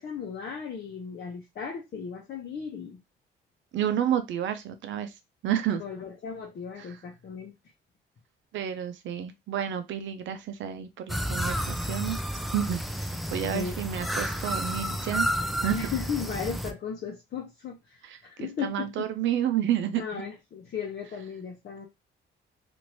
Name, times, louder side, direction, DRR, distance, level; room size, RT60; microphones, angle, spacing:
voice 1, 0.0-3.0 5.8-7.5 13.4-13.8 15.7-19.1 20.0-21.9, left 6 dB, 55° left, 0.8 m, -36 dB
voice 2, 3.7-5.1 5.4-5.8 6.8-7.0 8.5-12.2 12.5-15.3 15.6-15.9 18.0-20.2, right 10 dB, 70° right, 0.6 m, -30 dB
sound 1, 11.1-16.7, equal, ahead, 0.4 m, -31 dB
2.9 x 2.6 x 3.0 m
cardioid pair, 90°, 20 cm